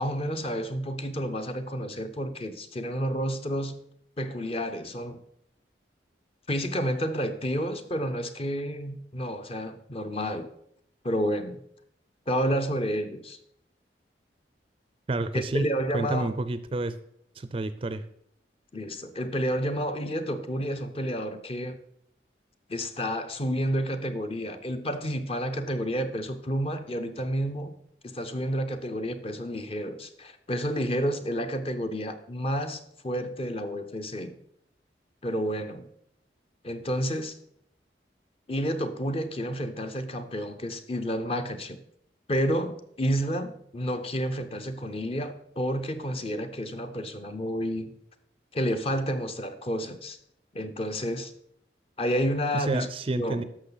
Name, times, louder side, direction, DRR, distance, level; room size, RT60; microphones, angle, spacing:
voice 1, 0.0-3.8 4.2-5.2 6.5-10.5 11.0-11.6 12.3-13.4 15.3-16.3 18.7-21.8 22.7-27.7 28.0-34.4 35.2-35.8 36.6-37.4 38.5-41.8 42.3-47.9 48.5-50.2 50.5-51.3 52.0-52.9 53.2-53.4, equal, 35° left, 8 dB, 0.7 m, -30 dB
voice 2, 15.1-15.7 15.9-17.0 17.4-18.0 52.5-53.4, right 2 dB, 30° right, 13 dB, 0.4 m, -29 dB
11.5 x 6.7 x 4.0 m, 0.72 s
head